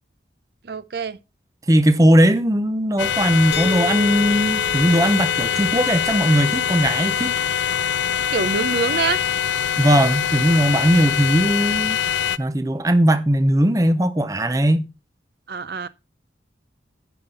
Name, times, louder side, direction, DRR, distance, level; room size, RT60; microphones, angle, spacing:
voice 1, 0.7-1.2 8.3-9.2 15.5-15.9, right 5 dB, 60° right, 0.6 m, -25 dB
voice 2, 1.7-7.3 9.8-12.0 12.4-14.8, equal, 20° right, 0.6 m, -18 dB
sound 1, 3.0-12.4, left 8 dB, 85° left, 0.4 m, -23 dB
sound 2, 3.5-9.3, left 1 dB, 60° left, 1.1 m, -36 dB
10.0 x 5.7 x 5.3 m
head